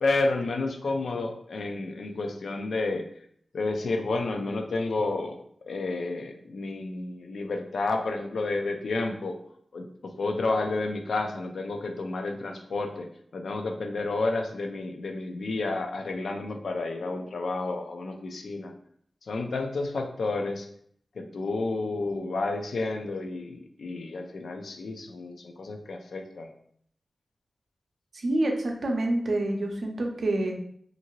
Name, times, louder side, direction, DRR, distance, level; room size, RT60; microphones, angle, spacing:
voice 1, 0.0-3.0 3.5-9.4 9.7-13.1 13.3-18.7 19.2-20.7 21.2-26.5, left 3 dB, 85° left, 5 dB, 0.4 m, -30 dB
voice 2, 28.1-30.6, right 1 dB, 70° right, 1 dB, 0.5 m, -27 dB
2.7 x 2.5 x 2.9 m, 0.66 s
wide cardioid pair, 85°, 0 cm